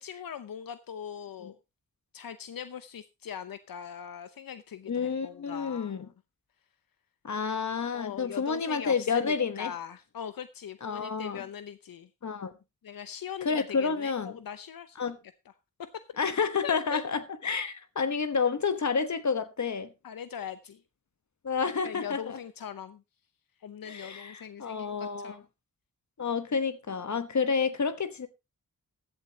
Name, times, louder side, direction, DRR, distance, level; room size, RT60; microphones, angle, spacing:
voice 1, 0.0-1.5 2.1-6.1 7.9-12.1 12.8-15.0 15.8-16.0 16.6-17.0 20.0-20.8 21.8-23.0 23.6-25.4, left 8 dB, 85° left, 0.8 m, -41 dB
voice 2, 4.9-6.0 7.2-9.7 10.8-11.4 12.2-12.5 13.4-14.4 15.0-15.2 16.2-19.9 21.4-22.4 23.9-25.4 26.2-28.3, left 5 dB, 55° left, 1.2 m, -30 dB
15.5 x 11.0 x 2.8 m
wide cardioid pair, 125°, 34 cm